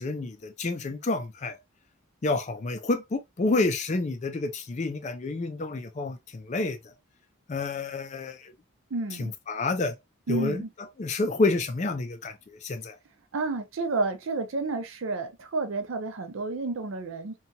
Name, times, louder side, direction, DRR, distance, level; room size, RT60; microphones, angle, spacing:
voice 1, 0.0-1.6 2.2-6.8 7.5-8.5 9.2-9.9 10.3-10.6 11.0-12.3 12.6-13.0, left 3 dB, 35° left, 0.4 m, -29 dB
voice 2, 8.9-9.3 10.3-10.7 13.3-17.3, right 3 dB, 70° right, 0.5 m, -30 dB
2.8 x 2.3 x 2.6 m
head